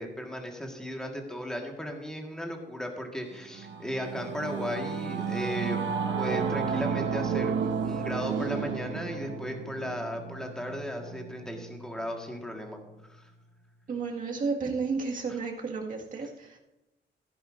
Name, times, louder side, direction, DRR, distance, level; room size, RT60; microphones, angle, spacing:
voice 1, 0.0-5.8 6.2-12.8 13.1-13.3, equal, 5° left, 1 dB, 1.6 m, -36 dB
Singing / Musical instrument, 3.3-13.0, right 6 dB, 90° right, 1.0 m, -33 dB
voice 2, 13.9-16.6, right 4 dB, 45° right, 0 dB, 1.9 m, -32 dB
15.5 x 10.0 x 2.6 m, 0.95 s
wide cardioid pair, 135°, 19 cm